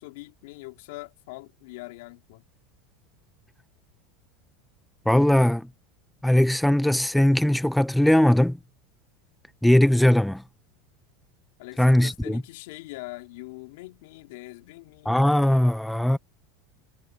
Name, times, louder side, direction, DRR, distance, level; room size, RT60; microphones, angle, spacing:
voice 1, 0.0-2.4 11.6-15.3, left 22 dB, 75° left, 3.1 m, -42 dB
voice 2, 5.0-5.7 6.2-8.6 9.6-10.4 11.8-12.4 15.0-16.2, left 1 dB, 5° left, 1.1 m, -20 dB
supercardioid pair, 105°, 0 cm